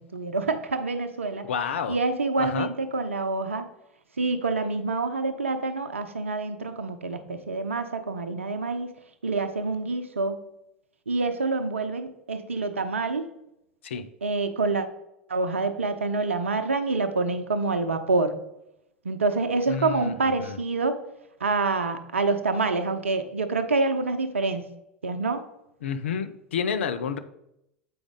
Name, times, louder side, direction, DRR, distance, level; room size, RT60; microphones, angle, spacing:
voice 1, 0.0-1.5 1.9-3.7 4.2-8.9 9.2-10.4 11.1-13.3 14.2-14.9 15.3-18.3 19.0-21.0 21.4-24.6 25.0-25.4, right 3 dB, 80° right, 9 dB, 0.7 m, -27 dB
voice 2, 1.4-2.0 2.4-2.7 13.8-14.1 19.7-20.6 25.8-27.2, left 6 dB, 70° left, 10 dB, 0.6 m, -30 dB
7.7 x 5.0 x 3.6 m, 0.81 s
figure-of-eight pair, 85°, 7 cm